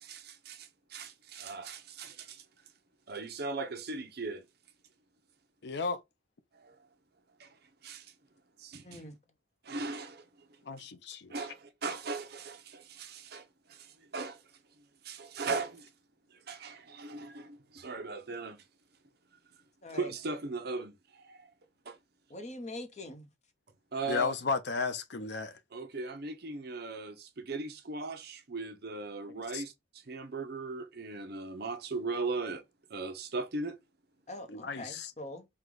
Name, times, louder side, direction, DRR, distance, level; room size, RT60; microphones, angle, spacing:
voice 1, 0.0-2.4 3.1-4.4 6.5-6.8 7.4-7.5 7.8-8.1 8.6-9.0 9.6-10.5 11.3-14.4 15.0-15.9 16.3-18.6 19.9-21.5 21.9-22.0 23.9-24.3 25.7-29.7 30.1-32.6 32.9-33.8, right 3 dB, 50° right, 0.7 m, -38 dB
voice 2, 5.6-6.0 10.6-11.5 24.1-25.6 29.5-29.6 34.5-35.1, left 4 dB, 55° left, 0.5 m, -34 dB
voice 3, 8.8-9.1 19.8-20.1 22.3-23.3 34.3-35.5, left 1 dB, 35° left, 0.8 m, -43 dB
4.7 x 2.3 x 3.7 m
head